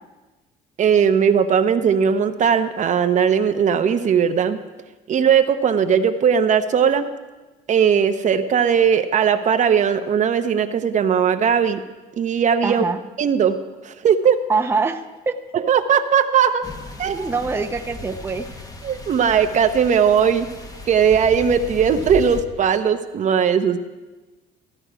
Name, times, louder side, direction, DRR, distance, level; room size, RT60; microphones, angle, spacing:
voice 1, 0.8-4.6 5.1-7.1 7.7-11.8 12.2-12.8 13.2-13.6 13.8-14.4 15.5-16.6 17.0-17.3 18.8-20.5 20.9-23.8, right 7 dB, 45° right, 8 dB, 0.8 m, -18 dB
voice 2, 12.6-13.0 14.5-15.4 17.1-18.5, right 4 dB, 15° right, 5 dB, 0.7 m, -24 dB
sound 1, 16.6-22.4, left 2 dB, 20° left, 1.1 m, -36 dB
15.0 x 11.0 x 5.0 m, 1.2 s
cardioid pair, 110°, 17 cm